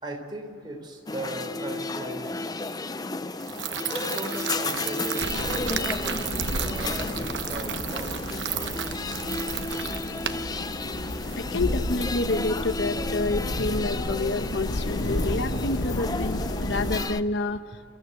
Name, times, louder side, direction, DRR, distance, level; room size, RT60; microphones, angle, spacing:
voice 1, 0.0-2.5 3.8-8.7, right 1 dB, 25° right, 2 dB, 3.5 m, -38 dB
sound 1, 1.1-17.2, left 3 dB, 20° left, 0.5 m, -33 dB
sound 2, 3.4-11.4, right 9 dB, 75° right, 0.9 m, -34 dB
sound 3, 5.2-17.0, left 1 dB, 85° left, 1.5 m, -32 dB
voice 2, 11.4-17.6, left 2 dB, 70° left, 9 dB, 1.1 m, -28 dB
30.0 x 14.5 x 7.9 m, 2.7 s
head